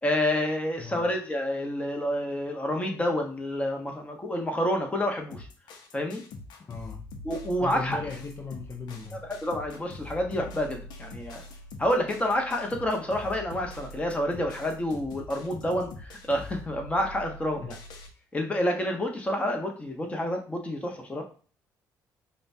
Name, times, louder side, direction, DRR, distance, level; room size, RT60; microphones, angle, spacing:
voice 1, 0.0-5.5 5.9-6.2 7.2-8.0 9.1-11.4 11.8-17.8 18.3-21.2, left 1 dB, 15° left, 2 dB, 1.0 m, -29 dB
sound 1, 5.3-18.1, left 2 dB, 75° left, 0.7 m, -44 dB
voice 2, 6.7-7.0 7.6-9.2 17.6-17.7, left 4 dB, 35° left, 1 dB, 0.5 m, -37 dB
5.0 x 2.3 x 2.7 m, 0.40 s
cardioid pair, 85°, 7 cm